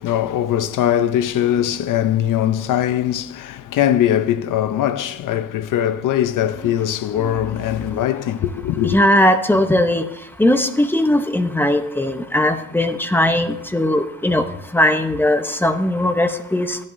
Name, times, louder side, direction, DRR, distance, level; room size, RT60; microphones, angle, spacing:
voice 1, 0.0-9.0, left 11 dB, 85° left, 0.7 m, -21 dB
voice 2, 8.8-10.0 10.4-14.4 14.7-16.8, left 1 dB, 5° left, 0.8 m, -18 dB
14.0 x 10.5 x 2.6 m
cardioid pair, 145°, 31 cm